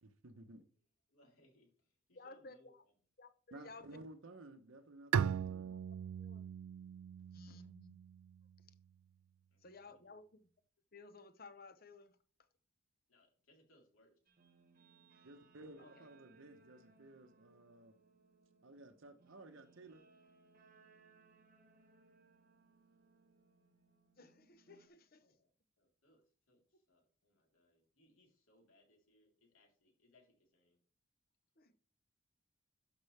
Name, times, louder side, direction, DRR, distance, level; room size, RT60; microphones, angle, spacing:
voice 1, 0.0-0.6 3.5-5.8 15.2-17.9 18.6-20.0, right 2 dB, 75° right, 0.9 m, -55 dB
voice 2, 1.1-2.9 7.2-7.7 9.5-10.2 13.1-14.2 25.2-25.5 25.8-30.8, left 1 dB, 85° left, 3.6 m, -71 dB
voice 3, 2.1-2.8 3.2-3.9 5.7-6.5 7.3-7.9 8.6-8.7 9.6-10.5 10.9-12.2 15.8-16.1 24.2-25.3 31.6-31.8, left 3 dB, 45° left, 0.9 m, -57 dB
Bowed string instrument, 5.1-8.6, right 7 dB, 90° right, 0.3 m, -39 dB
Guitar, 14.3-24.9, right 4 dB, 45° right, 1.1 m, -68 dB
12.0 x 5.9 x 3.3 m
head